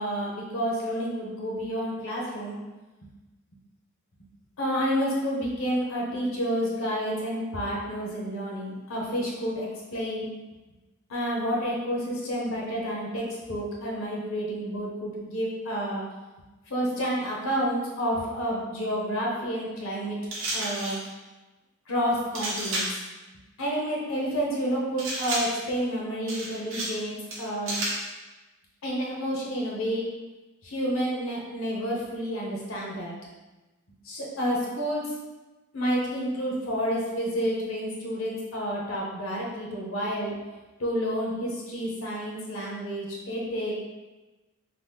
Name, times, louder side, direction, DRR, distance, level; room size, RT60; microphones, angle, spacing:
voice 1, 0.0-2.5 3.0-3.1 4.6-10.3 11.1-16.0 16.7-20.2 20.5-21.0 21.9-22.9 23.6-27.8 28.8-30.1 30.6-33.2 34.0-35.1 35.7-40.4 40.8-43.7, equal, 75° left, -3 dB, 0.8 m, -29 dB
sound 1, 20.3-21.1 22.3-23.0 25.0-25.7 26.3-27.0 27.3-28.1, right 1 dB, 70° right, 0.7 m, -31 dB
2.9 x 2.0 x 3.4 m, 1.1 s
head